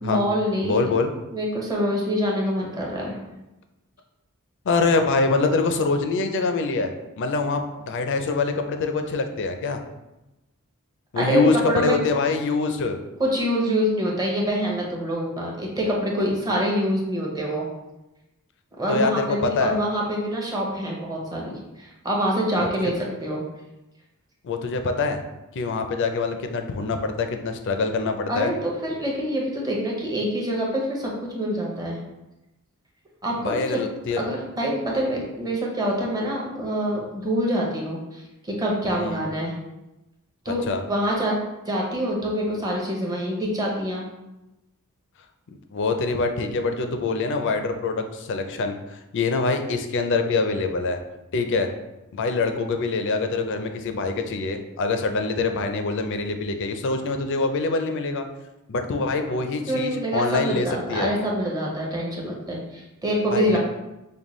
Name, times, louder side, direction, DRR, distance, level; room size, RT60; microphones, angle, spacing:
voice 1, 0.0-0.8 1.3-3.2 11.2-11.9 13.2-17.7 18.8-23.4 28.3-32.0 33.2-33.8 34.2-39.5 40.4-41.3 41.6-44.0 59.7-63.6, equal, 15° right, -3 dB, 0.7 m, -25 dB
voice 2, 0.6-1.1 4.7-9.8 11.1-13.0 18.9-19.7 22.6-22.9 24.4-25.2 25.5-28.5 33.4-34.3 39.0-39.2 40.7-40.8 45.5-51.0 51.3-51.7 52.1-58.3 58.7-61.1 63.3-63.6, left 3 dB, 55° left, 6 dB, 0.4 m, -25 dB
5.2 x 2.2 x 3.0 m, 0.98 s
head